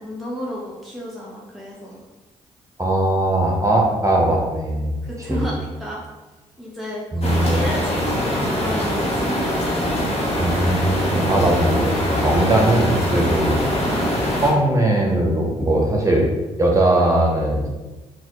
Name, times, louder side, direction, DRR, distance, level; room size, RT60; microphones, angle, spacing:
voice 1, 0.0-2.0 5.0-6.0 6.6-9.4 13.8-14.1, equal, ahead, -5 dB, 0.8 m, -32 dB
voice 2, 2.8-4.9 5.3-5.5 7.1-7.6 10.4-13.9 14.4-16.3 16.6-17.7, right 1 dB, 20° right, -1 dB, 1.1 m, -19 dB
sound 1, 7.2-14.5, equal, 45° left, 1.3 m, -23 dB
3.9 x 2.5 x 3.0 m, 1.2 s
hypercardioid pair, 50°, 15 cm